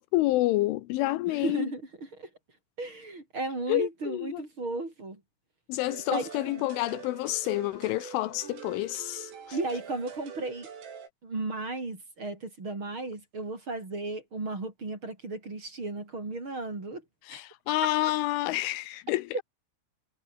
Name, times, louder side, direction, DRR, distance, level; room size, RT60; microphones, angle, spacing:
voice 1, 0.0-1.7 3.7-4.4 5.7-9.6 17.3-19.4, left 17 dB, 85° left, 3.2 m, -29 dB
voice 2, 1.3-2.3 2.8-5.2 6.1-6.7 9.5-10.7 11.2-17.0 17.3-17.4 19.3-19.4, right 2 dB, 25° right, 5.3 m, -35 dB
sound 1, 5.9-11.1, right 7 dB, 80° right, 7.7 m, -45 dB
omnidirectional pair, 5.8 m